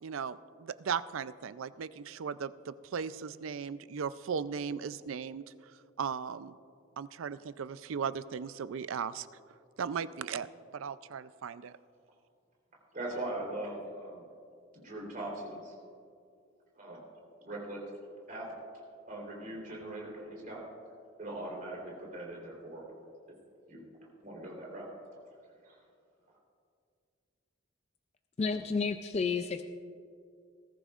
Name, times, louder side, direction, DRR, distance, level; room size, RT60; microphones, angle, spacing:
voice 1, 0.0-5.4 6.0-6.5 7.0-9.3 9.8-10.5 10.7-11.8, right 6 dB, 75° right, 15 dB, 0.4 m, -37 dB
voice 2, 12.9-14.2 14.7-15.7 16.8-17.1 17.4-17.8 18.3-18.5 19.1-20.6 21.2-22.9 23.7-24.9 25.6-25.8, right 1 dB, 40° right, -2 dB, 3.5 m, -41 dB
voice 3, 28.4-29.6, left 5 dB, 30° left, 7 dB, 0.4 m, -31 dB
20.0 x 13.5 x 2.5 m, 2.4 s
head